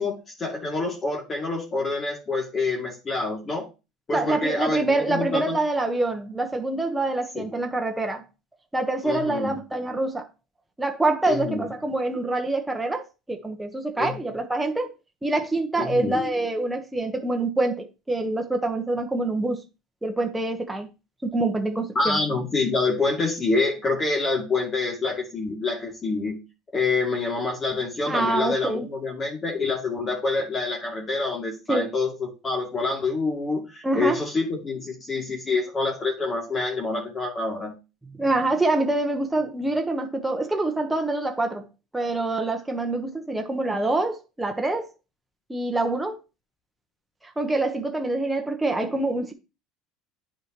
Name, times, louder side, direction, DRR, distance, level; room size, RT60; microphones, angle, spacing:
voice 1, 0.0-3.7 4.1-5.6 7.3-7.5 9.0-9.6 11.3-11.7 14.0-14.1 15.8-16.3 21.9-26.4 26.7-37.7, left 3 dB, 30° left, 2.5 m, -27 dB
voice 2, 4.1-8.2 8.7-10.3 10.8-14.9 15.2-19.6 20.0-20.9 21.2-22.2 28.1-28.9 31.7-31.9 33.8-34.2 38.2-41.7 41.9-44.9 45.5-46.2 47.2-49.3, right 2 dB, 10° right, 1.2 m, -25 dB
9.6 x 5.1 x 3.0 m
supercardioid pair, 95°, 0 cm